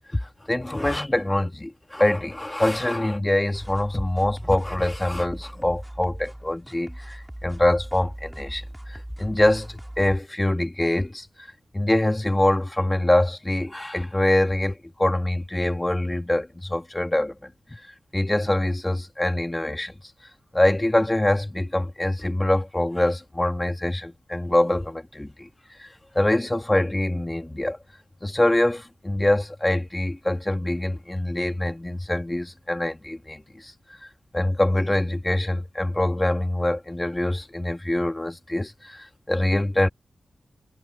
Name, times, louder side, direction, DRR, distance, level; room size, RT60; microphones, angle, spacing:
voice 1, 0.1-11.5 11.7-17.8 18.1-20.0 20.5-27.8 28.2-33.7 34.0-39.9, left 1 dB, 15° left, 2.0 m, -24 dB
sound 1, 3.5-10.2, right 1 dB, 10° right, 4.1 m, -39 dB
wide cardioid pair, 100°, 0 cm